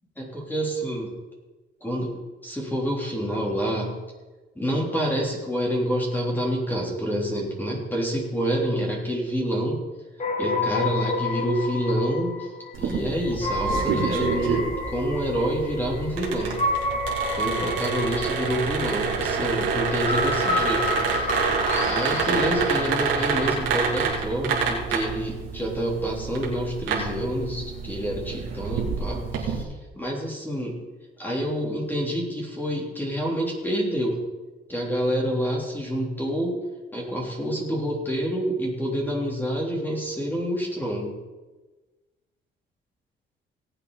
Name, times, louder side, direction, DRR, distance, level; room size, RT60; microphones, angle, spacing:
voice 1, 0.2-1.2 1.8-4.0 4.6-9.8 10.4-12.5 12.8-16.7 17.3-21.4 21.9-29.7 29.9-30.8 31.2-34.2 34.7-36.6 36.9-41.2, equal, 10° left, -3 dB, 3.6 m, -27 dB
sound 1, 10.2-23.3, left 2 dB, 35° left, 2.3 m, -30 dB
sound 2, 12.7-29.6, right 5 dB, 90° right, 2.9 m, -28 dB
18.5 x 8.2 x 4.2 m, 1.2 s
cardioid pair, 90°, 20 cm